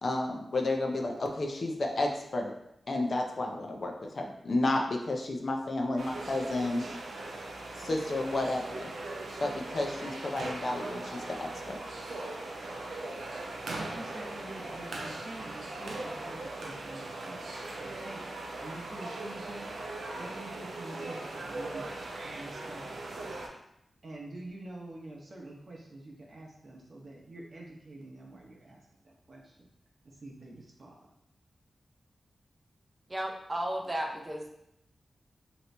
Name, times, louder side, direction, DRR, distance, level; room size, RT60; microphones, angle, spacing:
voice 1, 0.0-2.5 2.9-6.8 7.8-8.9 9.4-11.5, left 2 dB, 55° left, 2 dB, 0.5 m, -31 dB
sound 1, 6.0-23.5, right 2 dB, 90° right, 0.5 m, -39 dB
voice 2, 13.7-18.3 18.6-19.7 20.2-23.6 24.0-29.7 30.0-31.1, right 2 dB, 55° right, -2 dB, 0.8 m, -47 dB
voice 3, 33.1-34.5, right 1 dB, 25° right, 1 dB, 0.5 m, -34 dB
2.9 x 2.6 x 3.2 m, 0.80 s
wide cardioid pair, 80°, 0 cm